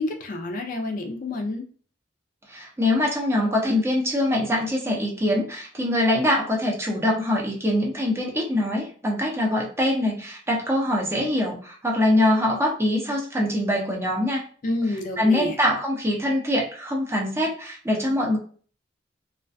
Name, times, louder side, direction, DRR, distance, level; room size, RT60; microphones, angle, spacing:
voice 1, 0.0-1.7 14.6-15.6, left 2 dB, 45° left, 3 dB, 0.4 m, -28 dB
voice 2, 2.5-14.4 15.2-18.4, left 1 dB, 15° right, -2 dB, 0.5 m, -23 dB
2.4 x 2.2 x 2.5 m, 0.43 s
head